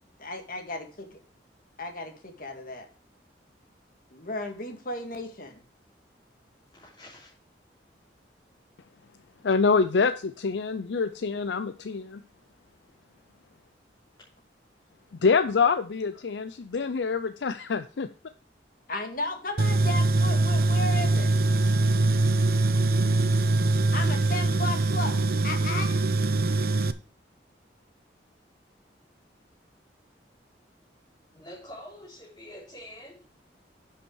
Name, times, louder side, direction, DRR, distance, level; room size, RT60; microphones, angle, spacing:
voice 1, 0.2-1.1 1.8-2.9 4.1-5.6 18.9-21.3 23.9-26.0, left 2 dB, 55° left, 4 dB, 1.9 m, -35 dB
voice 2, 6.7-7.3 31.3-33.2, left 1 dB, 25° left, -7 dB, 3.5 m, -46 dB
voice 3, 9.4-12.2 15.2-18.1, left 5 dB, 85° left, 11 dB, 0.5 m, -25 dB
Tools, 19.6-26.9, right 2 dB, 55° right, 0.7 m, -23 dB
10.0 x 5.6 x 4.7 m, 0.40 s
head